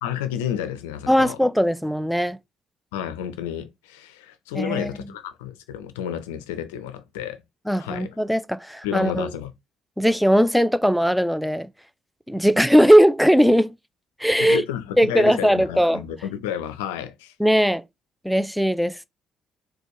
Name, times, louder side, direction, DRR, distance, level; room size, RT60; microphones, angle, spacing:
voice 1, 0.0-1.4 2.9-7.4 7.7-8.2 8.8-9.5 14.4-17.3, left 9 dB, 75° left, 0.4 m, -31 dB
voice 2, 1.1-2.4 4.5-4.9 7.7-9.3 10.0-11.7 12.3-13.7 14.2-14.6 15.0-16.0 17.4-17.8 18.2-19.1, equal, ahead, 0.3 m, -19 dB
4.1 x 2.2 x 3.0 m
figure-of-eight pair, 45°, 0 cm